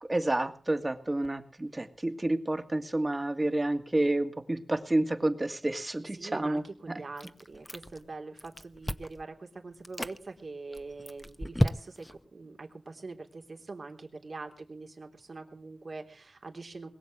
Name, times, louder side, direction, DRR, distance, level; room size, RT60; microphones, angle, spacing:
voice 1, 0.0-7.0, right 1 dB, 35° right, 7 dB, 1.9 m, -30 dB
voice 2, 6.2-16.9, right 3 dB, 70° right, 3 dB, 3.3 m, -43 dB
Chewing mastication, 7.2-8.1 8.4-9.2 9.7-10.2 10.7-12.2, equal, 10° left, 0.9 m, -32 dB
21.5 x 7.4 x 7.7 m, 0.43 s
wide cardioid pair, 60°, 0 cm